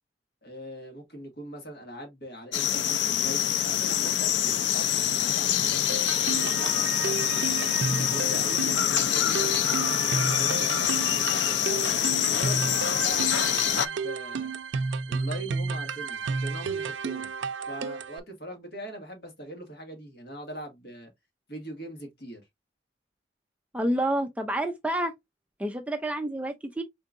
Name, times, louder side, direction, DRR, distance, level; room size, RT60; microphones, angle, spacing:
voice 1, 0.4-7.5 7.9-11.8 12.2-14.6 15.1-17.3 17.7-21.1 21.5-22.4, right 1 dB, 55° left, 1.8 m, -42 dB
sound 1, 2.5-13.9, left 10 dB, 80° left, 0.5 m, -25 dB
sound 2, 5.9-18.2, right 5 dB, 85° right, 0.4 m, -32 dB
voice 2, 23.7-25.1 25.6-26.8, right 1 dB, 5° right, 0.4 m, -28 dB
4.5 x 3.8 x 2.5 m
head